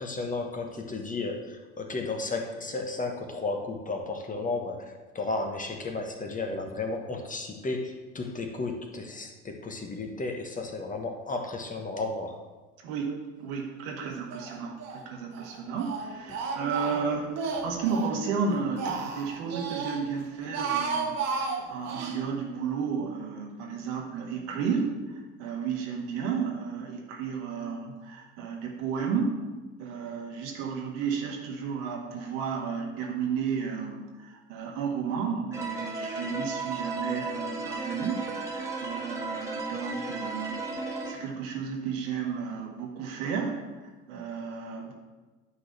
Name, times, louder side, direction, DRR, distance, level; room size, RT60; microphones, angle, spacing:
voice 1, 0.0-12.4 16.3-16.4, left 3 dB, 20° left, 3 dB, 1.3 m, -33 dB
voice 2, 12.8-24.9 25.4-29.4 29.8-43.6 44.1-44.9, right 6 dB, 65° right, 0 dB, 1.8 m, -33 dB
Speech, 14.3-15.0 15.3-18.1 18.5-20.0 20.4-22.2, right 5 dB, 50° right, 1.3 m, -33 dB
sound 1, 35.5-41.1, right 3 dB, 10° right, 1.8 m, -34 dB
9.9 x 4.0 x 6.5 m, 1.2 s
hypercardioid pair, 70°, 35 cm